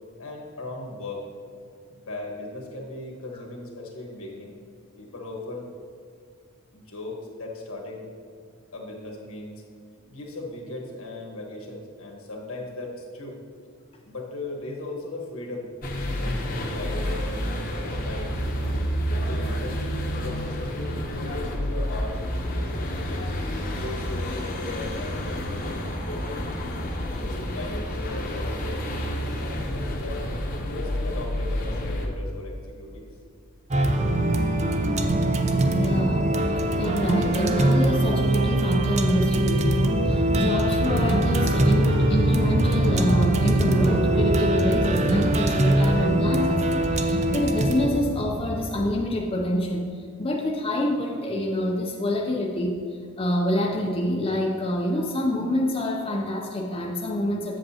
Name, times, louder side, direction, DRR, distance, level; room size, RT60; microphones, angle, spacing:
voice 1, 0.2-1.2 1.9-4.5 5.0-5.7 6.7-8.1 8.7-9.6 10.1-13.4 14.1-15.7 15.9-17.4 17.8-19.8 20.1-21.0 21.2-23.3 23.7-26.6 27.1-28.8 29.4-30.3 30.6-33.0, left 2 dB, 75° left, 0 dB, 1.4 m, -37 dB
sound 1, 15.8-32.1, equal, 40° left, 0.8 m, -29 dB
sound 2, 33.7-49.0, right 1 dB, 30° right, 0.4 m, -22 dB
voice 2, 35.7-49.9 50.2-52.8 53.2-57.6, left 1 dB, 25° left, 0 dB, 0.5 m, -27 dB
7.8 x 7.2 x 2.8 m, 2.2 s
head